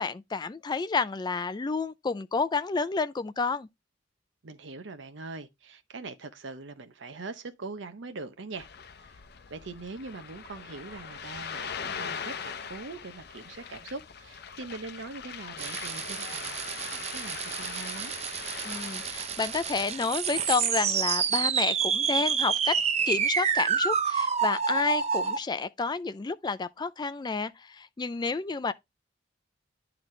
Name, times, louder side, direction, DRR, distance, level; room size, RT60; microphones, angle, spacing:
voice 1, 0.0-3.7 18.6-22.8 23.0-28.7, left 4 dB, 25° left, 0.4 m, -30 dB
voice 2, 4.4-8.7 9.0-9.2 9.5-18.1, right 3 dB, 75° right, 0.7 m, -42 dB
Ocean, 8.6-19.9, left 6 dB, 60° left, 0.7 m, -41 dB
sound 1, 15.6-25.4, right 7 dB, 35° right, 0.6 m, -29 dB
10.5 x 3.9 x 3.2 m
head